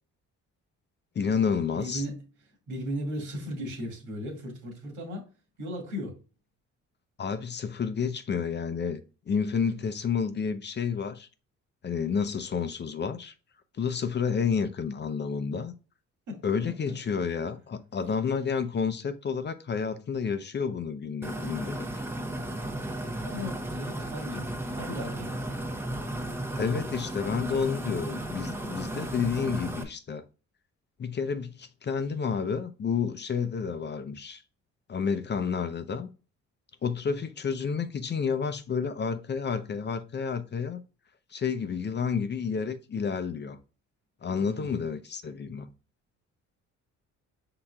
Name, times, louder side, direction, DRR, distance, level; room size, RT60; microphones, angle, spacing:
voice 1, 1.2-2.0 7.2-11.3 11.8-13.3 13.8-15.7 16.4-21.9 26.6-30.2 31.0-34.4 34.9-36.1 36.8-40.8 41.3-43.6 44.2-45.7, left 6 dB, 35° left, 0.6 m, -30 dB
voice 2, 1.7-2.3 2.7-5.3 5.6-6.2 16.3-16.4 16.8-16.9 22.8-25.4 44.4-44.8, equal, 80° right, 2.0 m, -37 dB
sound 1, 21.2-29.8, right 1 dB, 10° right, 0.7 m, -34 dB
5.6 x 3.8 x 2.3 m
cardioid pair, 90°, 30 cm